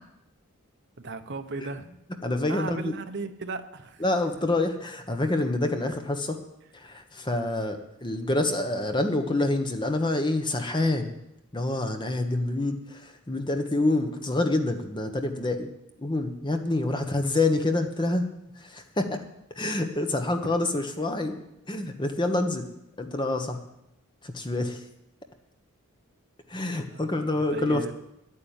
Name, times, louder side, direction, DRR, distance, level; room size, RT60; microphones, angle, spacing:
voice 1, 1.0-1.9 2.5-4.0 16.9-17.2 20.4-20.5 26.9-27.9, right 3 dB, 50° right, 7 dB, 0.9 m, -37 dB
voice 2, 2.2-2.9 4.0-6.4 6.7-11.1 11.5-15.7 16.0-18.3 18.6-19.2 19.5-21.4 21.7-22.7 23.0-23.6 24.2-24.8 26.5-27.9, left 2 dB, 20° left, 6 dB, 1.1 m, -27 dB
10.5 x 9.4 x 8.9 m, 0.84 s
head